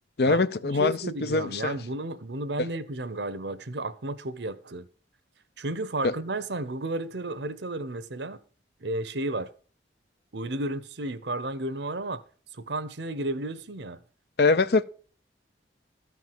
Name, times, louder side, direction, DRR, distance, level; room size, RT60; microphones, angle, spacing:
voice 1, 0.2-1.9 2.6-2.7 6.0-6.1 14.4-14.8, left 3 dB, 60° left, 0.6 m, -23 dB
voice 2, 0.8-4.8 5.6-8.4 8.8-9.5 10.3-12.2 12.5-14.0, right 2 dB, 75° right, 1.0 m, -32 dB
13.5 x 4.7 x 7.6 m
head